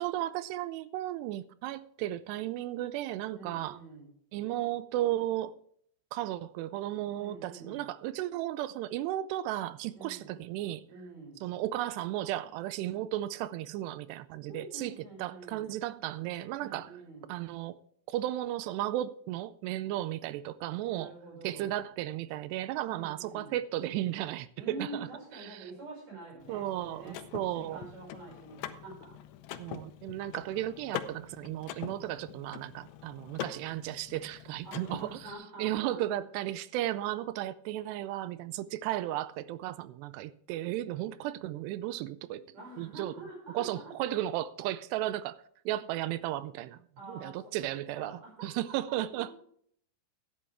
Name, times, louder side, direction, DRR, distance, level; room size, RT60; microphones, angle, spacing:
voice 1, 0.0-3.8 4.3-5.5 6.1-10.8 11.4-14.9 15.2-16.9 17.3-17.8 18.1-21.1 21.4-25.1 25.4-25.7 26.5-27.9 29.6-42.5 42.8-43.1 43.5-45.4 45.7-46.8 47.1-49.3, right 14 dB, 80° right, 2.5 m, -34 dB
voice 2, 3.3-4.1 7.2-7.9 9.9-10.3 10.9-11.4 14.5-15.7 16.6-17.3 19.8-19.9 20.9-21.8 22.9-23.5 24.6-27.3 27.5-29.2 34.6-36.0 42.5-43.9 47.0-49.4, right 2 dB, 40° right, 6.6 m, -47 dB
Car / Mechanisms, 26.4-35.3, left 11 dB, 90° left, 3.1 m, -44 dB
14.0 x 10.0 x 3.4 m
omnidirectional pair, 5.1 m